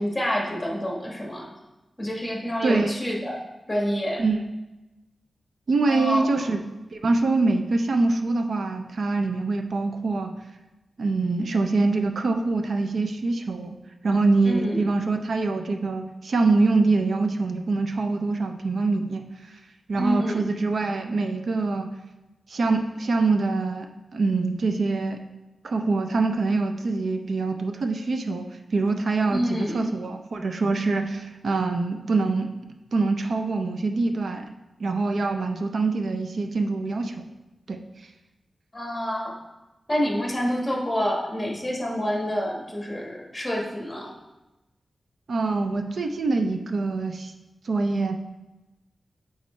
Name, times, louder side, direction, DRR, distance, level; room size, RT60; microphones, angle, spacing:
voice 1, 0.0-1.5 2.0-3.4 3.7-4.2 5.9-6.3 14.4-14.8 20.0-20.4 29.3-29.8 38.7-39.4 39.9-44.1, equal, 10° left, -2 dB, 1.3 m, -27 dB
voice 2, 2.6-2.9 4.2-4.4 5.7-6.6 6.9-10.3 11.0-13.8 14.0-19.2 19.9-21.9 22.5-23.9 24.1-25.2 25.6-32.5 32.9-34.5 34.8-37.1 37.7-37.8 45.3-47.3 47.6-48.2, right 3 dB, 65° right, 6 dB, 0.5 m, -24 dB
8.5 x 3.6 x 3.1 m, 1.0 s
wide cardioid pair, 110°, 0 cm